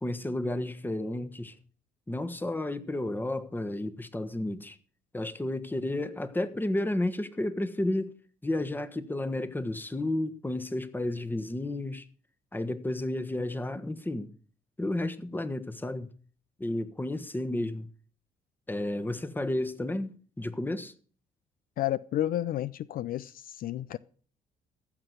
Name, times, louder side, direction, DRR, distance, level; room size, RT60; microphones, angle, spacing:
voice 1, 0.0-1.6 2.1-4.8 5.1-8.1 8.4-12.1 12.5-14.3 14.8-16.1 16.6-17.9 18.7-20.9, left 1 dB, 10° left, 1.3 m, -32 dB
voice 2, 21.8-24.0, left 13 dB, 60° left, 0.5 m, -31 dB
15.0 x 6.0 x 8.0 m
supercardioid pair, 75°, 17 cm